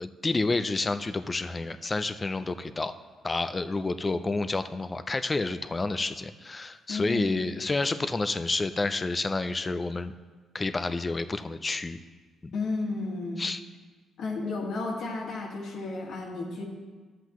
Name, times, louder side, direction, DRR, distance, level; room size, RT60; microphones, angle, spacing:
voice 1, 0.0-2.9 3.2-10.1 10.5-12.0 13.4-13.6, left 3 dB, 25° left, 11 dB, 0.5 m, -29 dB
voice 2, 6.9-7.3 12.5-13.4 14.2-16.6, left 3 dB, 75° left, -1 dB, 1.8 m, -32 dB
12.0 x 7.7 x 3.1 m, 1.4 s
cardioid pair, 90°, 0 cm